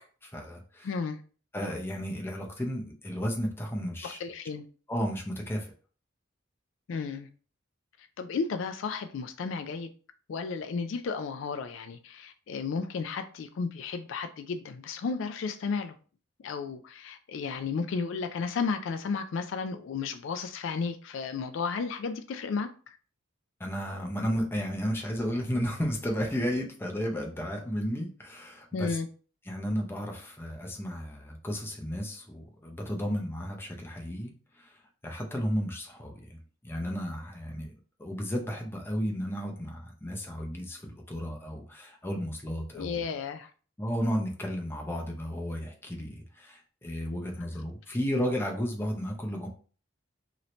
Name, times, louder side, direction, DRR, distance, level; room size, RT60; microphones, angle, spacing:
voice 1, 0.2-0.9 1.5-4.2 4.9-5.7 23.6-29.0 29.5-37.7 38.0-43.1 43.8-49.5, equal, 10° left, 0.6 m, -33 dB
voice 2, 0.8-1.2 4.0-4.6 6.9-7.3 8.2-9.9 10.3-15.9 16.4-23.0 28.7-29.1 42.7-43.5, left 5 dB, 70° left, 0.3 m, -33 dB
3.0 x 2.7 x 3.1 m
head